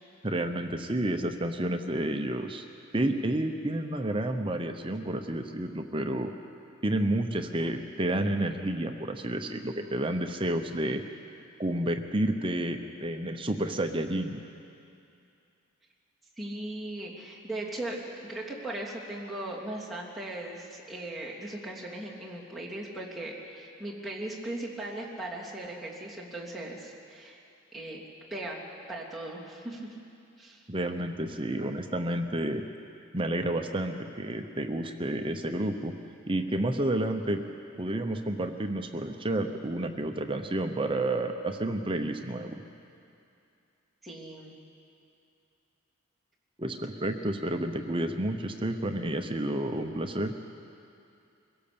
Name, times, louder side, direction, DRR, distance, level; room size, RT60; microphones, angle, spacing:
voice 1, 0.2-2.6 2.9-6.3 6.8-11.0 11.6-14.4 30.7-32.6 33.1-35.9 36.3-37.4 37.8-42.6 46.6-50.3, right 1 dB, 25° right, 6 dB, 0.8 m, -30 dB
voice 2, 16.4-27.4 27.7-28.0 28.3-28.6 28.9-29.8 30.4-30.6 44.0-44.5, right 1 dB, ahead, -7 dB, 3.0 m, -38 dB
23.5 x 17.0 x 7.0 m, 2.6 s
head